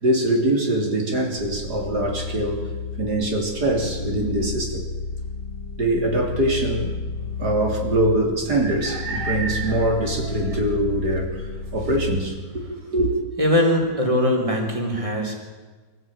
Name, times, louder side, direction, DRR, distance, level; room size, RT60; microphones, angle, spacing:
voice 1, 0.0-2.6 3.0-4.9 5.8-7.0 7.4-13.1, right 1 dB, 60° right, 2 dB, 3.9 m, -23 dB
sound 1, 1.4-12.2, left 4 dB, 80° left, 3.4 m, -32 dB
voice 2, 13.4-15.4, left 1 dB, 15° right, 1 dB, 3.7 m, -21 dB
24.5 x 15.5 x 8.9 m, 1.3 s
omnidirectional pair, 2.0 m